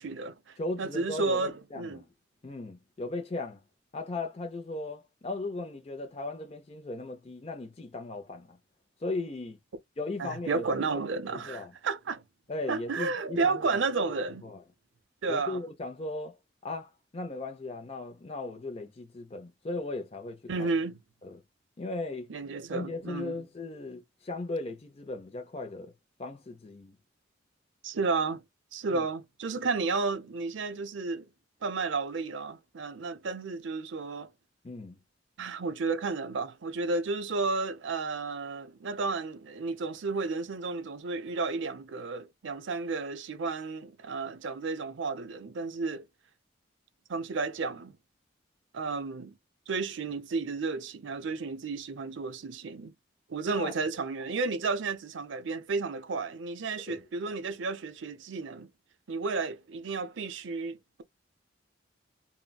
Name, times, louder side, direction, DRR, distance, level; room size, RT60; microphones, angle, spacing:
voice 1, 0.0-2.0 10.2-12.2 12.7-14.4 15.2-15.6 20.5-21.0 22.3-23.4 27.8-28.4 28.7-31.3 31.6-34.3 35.4-46.1 47.1-48.0 48.7-49.3 49.7-52.9 53.3-58.7 59.1-61.0, right 4 dB, 80° right, 0.5 m, -32 dB
voice 2, 0.6-2.1 2.4-3.6 3.9-8.6 9.0-9.6 10.0-11.0 11.3-11.7 12.5-13.6 14.4-14.6 15.3-16.4 16.6-20.7 21.2-21.4 21.8-22.3 22.7-25.9 26.2-26.9 28.9-29.1 34.6-35.0 53.5-53.7 56.9-57.0, left 2 dB, 30° left, 0.5 m, -37 dB
3.7 x 2.0 x 2.2 m
head